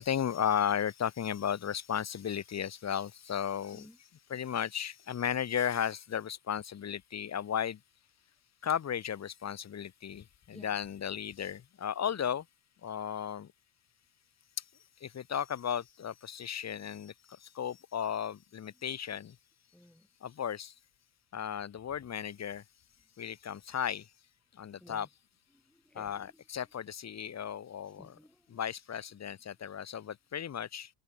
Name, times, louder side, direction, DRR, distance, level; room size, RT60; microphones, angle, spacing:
voice 1, 0.0-3.9 4.3-7.8 8.6-12.4 12.8-13.5 15.0-17.1 17.4-19.3 20.2-20.7 21.3-22.6 23.2-24.0 24.6-25.1 25.9-28.2 28.5-30.9, left 8 dB, 35° left, 2.8 m, -35 dB
voice 2, 19.7-20.1 24.8-25.1 25.5-26.4 27.8-28.6, equal, ahead, 5.8 m, -57 dB
hypercardioid pair, 85°, 48 cm